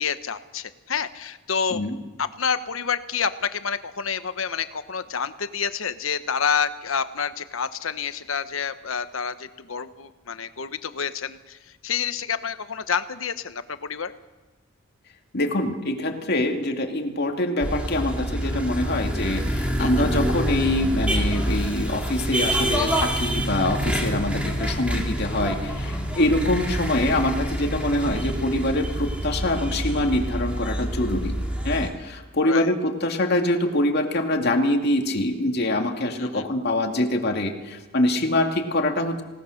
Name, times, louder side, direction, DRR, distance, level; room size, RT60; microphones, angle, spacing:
voice 1, 0.0-1.8 2.2-11.6 11.8-14.1 19.8-20.0 32.4-32.7 36.2-36.5, left 6 dB, 90° left, 11 dB, 1.1 m, -28 dB
voice 2, 15.3-31.3 31.6-39.2, left 1 dB, 55° left, 3 dB, 2.4 m, -24 dB
sound 1, 17.6-31.9, equal, 5° right, 2.8 m, -27 dB
27.0 x 18.0 x 6.6 m, 1.2 s
head